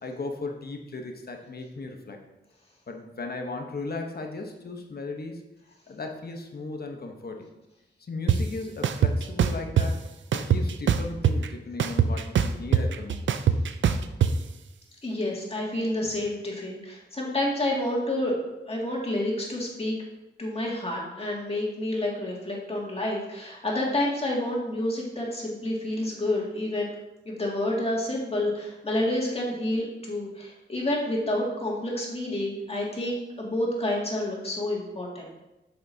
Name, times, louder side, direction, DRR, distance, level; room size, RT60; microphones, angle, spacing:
voice 1, 0.0-2.2 2.9-5.4 5.9-7.5 8.0-10.0 10.3-13.3, left 3 dB, 55° left, 3 dB, 1.1 m, -36 dB
sound 1, 8.3-8.4 8.8-9.9 10.3-11.5 11.8-14.3, right 8 dB, 85° right, 0.4 m, -22 dB
voice 2, 15.0-18.3 18.7-19.9 20.4-26.9 27.3-35.4, left 1 dB, 30° left, -3 dB, 2.3 m, -29 dB
8.0 x 6.7 x 2.8 m, 0.97 s
wide cardioid pair, 75°, 19 cm